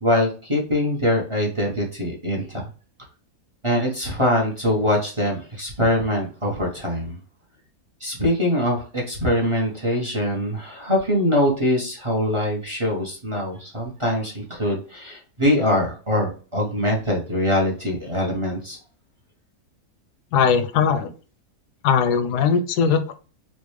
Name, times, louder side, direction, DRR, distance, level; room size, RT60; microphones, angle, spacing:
voice 1, 0.0-2.7 3.6-7.2 8.0-18.8, left 1 dB, 30° right, -1 dB, 0.6 m, -23 dB
voice 2, 20.3-21.1 21.8-23.1, left 6 dB, 85° left, 9 dB, 1.2 m, -19 dB
4.2 x 2.3 x 3.1 m, 0.37 s
omnidirectional pair, 1.7 m